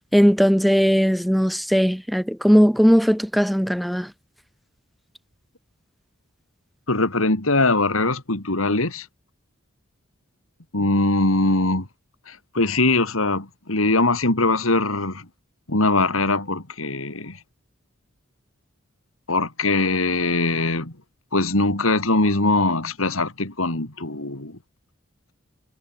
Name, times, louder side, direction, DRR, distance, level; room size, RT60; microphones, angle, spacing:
voice 1, 0.1-4.1, equal, ahead, 3.2 m, -18 dB
voice 2, 6.9-9.0 10.7-11.8 12.5-15.2 15.7-17.3 19.3-20.9 21.3-24.5, left 2 dB, 85° left, 3.3 m, -21 dB
head